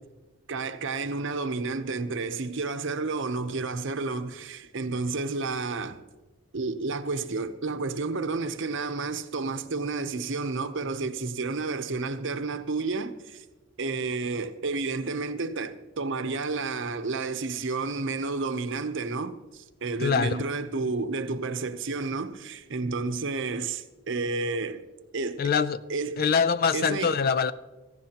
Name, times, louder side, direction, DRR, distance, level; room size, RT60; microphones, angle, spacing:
voice 1, 0.5-6.0 6.5-13.4 13.8-24.9 25.1-25.4 25.9-26.2 26.7-27.1, right 3 dB, 65° right, 0.8 m, -31 dB
voice 2, 20.0-20.4 25.4-25.8 26.2-27.5, left 6 dB, 45° left, 0.4 m, -24 dB
17.0 x 15.0 x 2.9 m
head